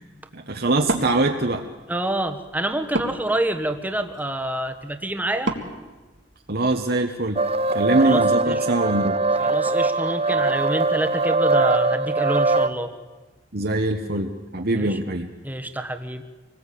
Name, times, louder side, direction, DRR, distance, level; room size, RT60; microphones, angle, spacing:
voice 1, 0.3-1.7 6.5-7.4 7.7-9.2 13.5-15.3, right 2 dB, 55° right, 3 dB, 1.4 m, -23 dB
Wood, 0.8-6.8, right 2 dB, 75° right, 2.2 m, -34 dB
voice 2, 1.9-5.5 8.0-8.7 9.4-12.9 14.7-15.0 15.4-16.3, right 1 dB, 10° right, 8 dB, 1.5 m, -27 dB
sound 1, 7.4-12.7, right 3 dB, 35° right, 0.8 m, -21 dB
26.0 x 20.0 x 8.6 m, 1.3 s
head